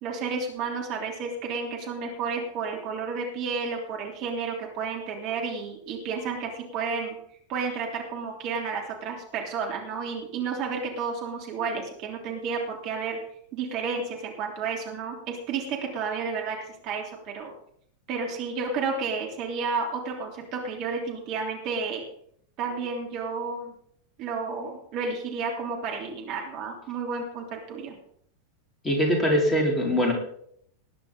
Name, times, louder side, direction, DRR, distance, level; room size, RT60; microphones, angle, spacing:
voice 1, 0.0-7.2 7.5-13.2 13.5-16.6 16.8-17.5 18.1-22.0 22.6-23.7 24.2-28.0, right 5 dB, 40° right, 1 dB, 3.3 m, -31 dB
voice 2, 28.8-30.1, equal, 15° left, 0 dB, 4.0 m, -22 dB
19.5 x 10.0 x 3.9 m, 0.67 s
figure-of-eight pair, 90°, 0 cm